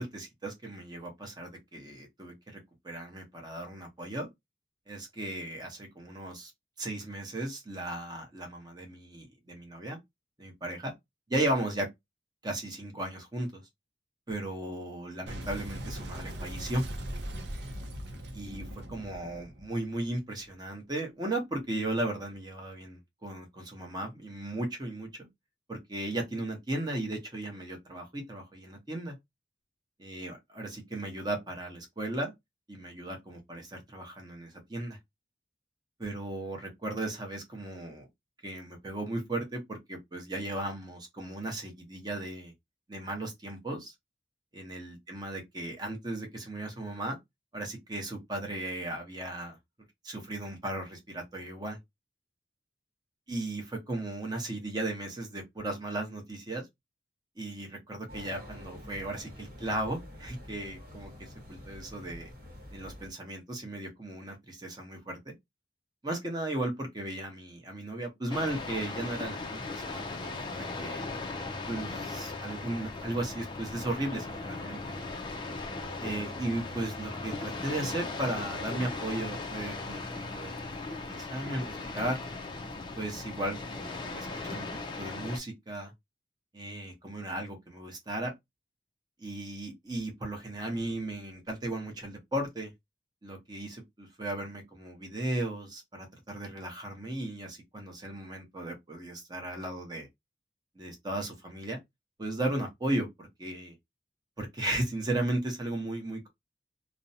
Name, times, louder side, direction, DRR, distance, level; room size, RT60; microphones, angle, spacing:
voice 1, 0.0-2.6 2.8-4.3 4.9-6.5 6.8-10.0 10.4-10.9 11.3-11.9 12.4-13.6 14.3-16.8 18.3-25.3 25.7-29.2 30.0-32.3 32.7-35.0 36.0-38.0 38.4-42.5 42.9-43.9 44.5-47.2 47.5-49.6 50.0-51.8 53.3-56.7 57.4-62.3 62.7-65.3 66.0-71.0 71.7-74.8 76.0-82.2 83.0-84.7 85.0-85.9 86.5-88.3 89.2-92.7 93.2-100.1 100.8-101.8 102.2-103.7 104.4-106.3, right 1 dB, 25° right, 0.7 m, -36 dB
Boom, 15.3-20.5, equal, 80° right, 0.6 m, -40 dB
sound 1, 58.1-63.1, left 1 dB, 55° right, 1.0 m, -47 dB
sound 2, 68.3-85.4, left 3 dB, 25° left, 0.3 m, -38 dB
2.4 x 2.0 x 2.6 m
head